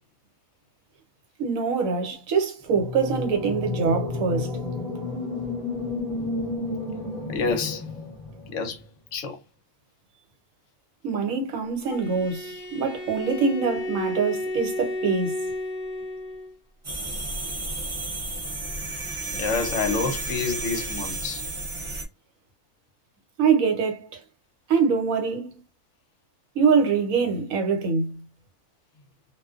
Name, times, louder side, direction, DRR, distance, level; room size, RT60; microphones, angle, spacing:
voice 1, 1.4-4.5 11.0-15.4 23.4-24.2 24.7-25.6 26.5-28.2, right 5 dB, 70° right, 1.1 m, -24 dB
sound 1, 2.7-8.8, left 3 dB, ahead, 0.9 m, -31 dB
voice 2, 7.3-7.8 8.5-8.8 9.1-9.4 19.3-21.4, left 4 dB, 65° left, 0.9 m, -27 dB
Bowed string instrument, 11.8-16.5, left 1 dB, 35° left, 0.8 m, -32 dB
sound 2, 16.8-22.0, right 2 dB, 40° right, 0.4 m, -32 dB
2.5 x 2.2 x 2.3 m
omnidirectional pair, 1.5 m